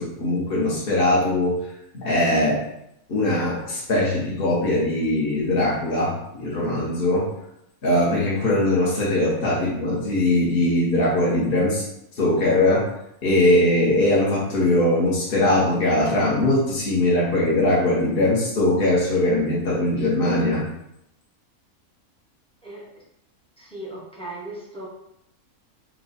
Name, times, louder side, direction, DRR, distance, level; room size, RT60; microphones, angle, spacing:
voice 1, 0.0-1.6 1.9-2.6 3.1-7.2 7.8-11.8 12.2-12.8 13.2-20.6, left 1 dB, 40° left, -7 dB, 1.2 m, -21 dB
voice 2, 23.6-24.9, right 1 dB, 5° left, -4 dB, 0.7 m, -37 dB
4.5 x 2.3 x 4.0 m, 0.80 s
omnidirectional pair, 1.5 m